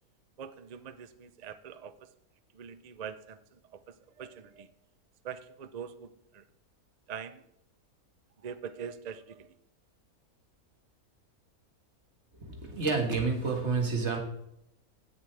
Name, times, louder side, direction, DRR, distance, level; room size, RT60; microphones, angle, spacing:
voice 1, 0.4-2.1 2.5-4.7 5.2-6.4 7.1-7.5 8.4-9.6, right 7 dB, 65° right, 12 dB, 0.4 m, -43 dB
voice 2, 12.4-14.2, right 4 dB, 50° right, 3 dB, 2.0 m, -29 dB
16.5 x 7.0 x 3.3 m, 0.80 s
omnidirectional pair, 1.5 m